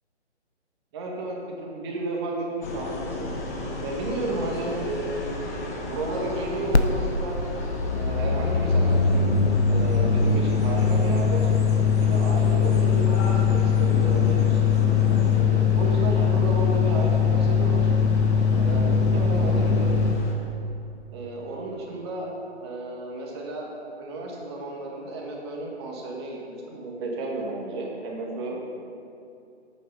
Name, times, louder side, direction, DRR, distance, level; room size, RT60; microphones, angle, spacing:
voice 1, 0.9-2.5 2.7-3.3 3.8-5.3 5.7-7.6 7.9-9.4 9.7-11.5 12.0-14.8 15.3-17.9 18.6-20.1 21.1-22.3 22.6-23.7 24.0-26.4 26.7-28.8, right 2 dB, 25° right, -1 dB, 1.8 m, -33 dB
sound 1, 2.6-20.3, left 2 dB, 15° left, 0.8 m, -34 dB
sound 2, 6.7-6.9 7.1-20.2, left 6 dB, 70° left, 0.9 m, -21 dB
16.0 x 9.0 x 4.1 m, 2.6 s
figure-of-eight pair, 140°, 34 cm